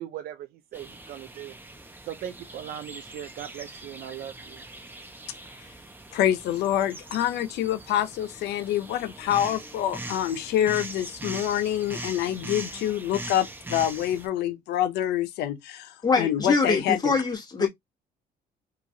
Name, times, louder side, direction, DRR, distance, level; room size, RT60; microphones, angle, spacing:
voice 1, 0.0-1.5 2.1-4.6, right 11 dB, 65° right, 0.5 m, -39 dB
sound 1, 0.7-14.3, right 2 dB, 10° right, 0.7 m, -41 dB
voice 2, 6.1-17.2, left 11 dB, 80° left, 0.6 m, -26 dB
voice 3, 16.0-17.7, left 4 dB, 25° left, 1.1 m, -24 dB
3.0 x 2.3 x 2.6 m
cardioid pair, 110°, 17 cm